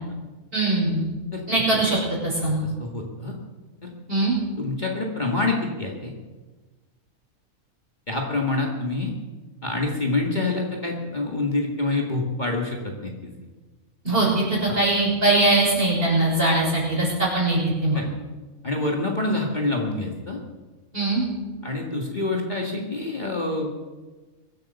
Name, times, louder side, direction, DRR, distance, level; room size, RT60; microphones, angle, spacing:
voice 1, 0.5-1.0 1.5-2.0 2.2-2.6 4.1-4.3 14.0-18.0 20.9-21.2, right 2 dB, 40° right, -4 dB, 6.5 m, -21 dB
voice 2, 2.4-3.3 3.8-3.9 4.6-6.1 8.1-9.1 9.6-13.3 14.7-14.8 17.9-18.1 18.6-20.4 21.6-23.7, left 2 dB, 30° left, 0 dB, 2.1 m, -27 dB
23.0 x 8.8 x 7.0 m, 1.3 s
omnidirectional pair, 1.5 m